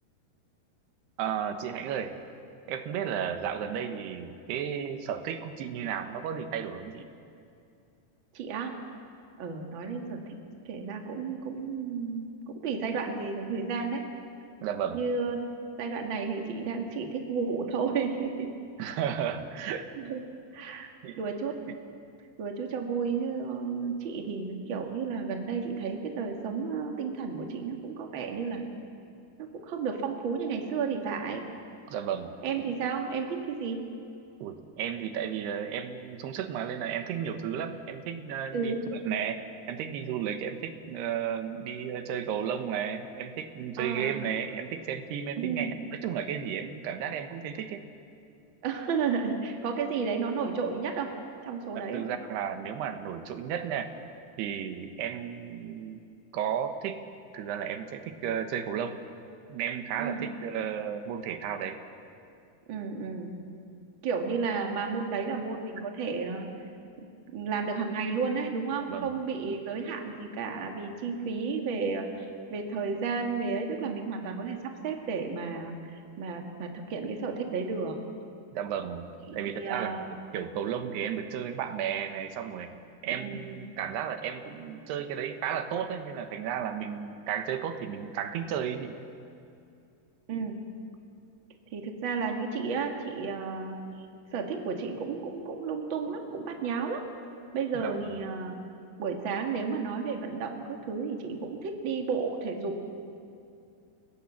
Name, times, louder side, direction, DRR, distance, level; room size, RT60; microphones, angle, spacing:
voice 1, 1.2-2.2 2.7-7.1 14.6-15.0 18.8-19.9 20.6-21.2 31.9-32.4 34.4-39.4 39.7-47.8 51.7-53.9 54.4-56.0 56.3-57.0 57.3-59.0 59.5-61.8 68.9-69.1 78.5-80.1 80.3-82.7 83.0-89.0 97.8-98.0, right 8 dB, 80° right, 7 dB, 3.3 m, -33 dB
voice 2, 8.3-8.8 9.4-10.2 10.7-14.0 14.9-15.5 15.8-18.5 20.0-20.2 20.5-20.8 21.2-21.6 22.4-28.6 29.5-31.4 32.4-33.8 38.5-38.8 43.8-44.3 45.4-45.8 48.6-51.1 51.5-52.0 60.0-60.3 62.7-63.3 64.0-66.5 67.0-67.1 67.3-78.0 79.3-80.0 83.1-83.4 90.3-90.6 91.7-93.8 94.3-97.0 97.5-98.6 99.0-102.9, right 5 dB, 40° right, 2 dB, 2.0 m, -32 dB
29.5 x 18.5 x 7.5 m, 2.6 s
omnidirectional pair, 4.8 m